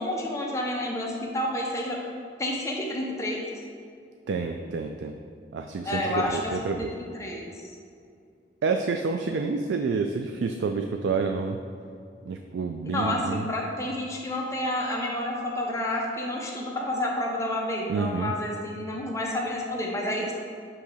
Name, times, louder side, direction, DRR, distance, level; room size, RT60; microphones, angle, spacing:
voice 1, 0.0-2.0 2.4-3.4 5.8-6.5 7.2-7.8 12.9-20.3, left 1 dB, 15° left, -2 dB, 0.7 m, -29 dB
voice 2, 4.3-5.2 5.5-6.9 8.6-11.6 12.3-13.5 17.9-18.3, right 4 dB, 90° right, 5 dB, 0.3 m, -28 dB
7.8 x 2.9 x 4.9 m, 2.4 s
head